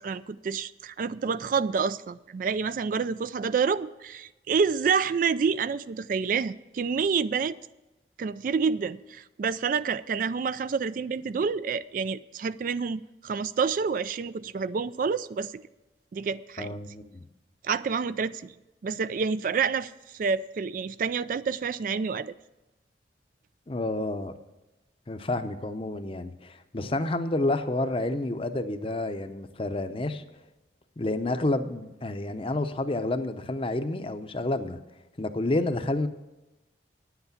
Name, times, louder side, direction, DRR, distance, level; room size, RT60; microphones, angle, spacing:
voice 1, 0.0-7.6 8.2-15.6 16.1-16.8 17.6-18.5 18.8-22.3, right 5 dB, 50° right, 0.3 m, -28 dB
voice 2, 16.6-17.2 23.7-24.3 25.1-30.2 31.0-34.8 35.2-36.1, left 2 dB, 30° left, 0.7 m, -29 dB
10.0 x 8.1 x 7.0 m
head